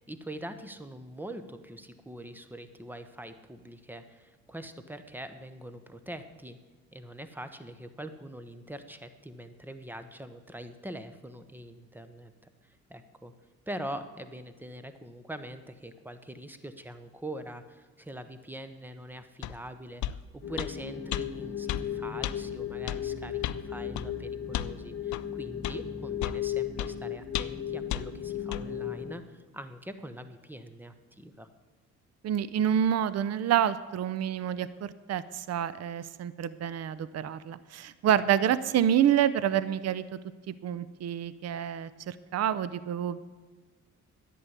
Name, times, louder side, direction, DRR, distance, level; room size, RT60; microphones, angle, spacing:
voice 1, 0.1-6.6 6.9-12.3 12.6-13.3 13.7-31.5, right 1 dB, 5° right, 10 dB, 1.1 m, -43 dB
sound 1, 19.4-19.6 20.0-20.2 20.6-20.7 21.1-21.2 21.7-21.9 22.2-22.4 22.9-23.0 23.4-23.6 24.0-24.1 24.5-24.7 25.1-25.2 25.6-25.8 26.2-26.4 26.8-26.9 27.3-27.6 27.9-28.0 28.5-28.6, left 12 dB, 70° left, 0.6 m, -33 dB
sound 2, 20.4-29.1, left 9 dB, 50° left, 1.5 m, -36 dB
voice 2, 32.2-40.2 40.5-43.2, right 10 dB, 55° right, 16 dB, 0.7 m, -28 dB
11.0 x 8.7 x 8.2 m, 1.3 s
cardioid pair, 90°, 30 cm